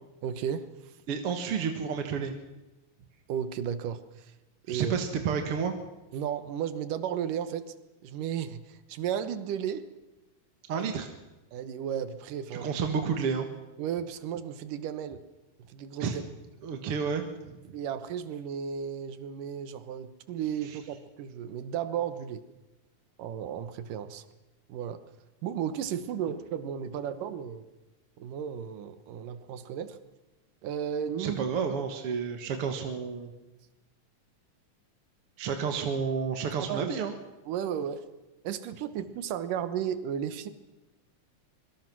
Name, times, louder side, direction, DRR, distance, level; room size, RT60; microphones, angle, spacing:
voice 1, 0.2-0.7 3.3-4.3 4.7-4.9 6.1-7.7 8.0-9.9 10.8-10.9 11.5-12.7 13.8-15.2 15.7-16.2 17.7-22.4 23.2-24.2 24.7-25.0 25.4-27.7 28.2-30.0 30.6-31.4 36.7-37.0 37.5-38.0 38.4-40.5, right 9 dB, 90° right, 12 dB, 2.8 m, -34 dB
voice 2, 1.1-2.3 4.7-5.7 10.7-11.1 12.5-13.5 16.0-16.2 16.6-17.6 20.6-20.8 31.2-33.3 35.4-37.1, right 6 dB, 50° right, 5 dB, 2.1 m, -30 dB
25.0 x 23.5 x 6.1 m, 1.1 s
omnidirectional pair, 3.7 m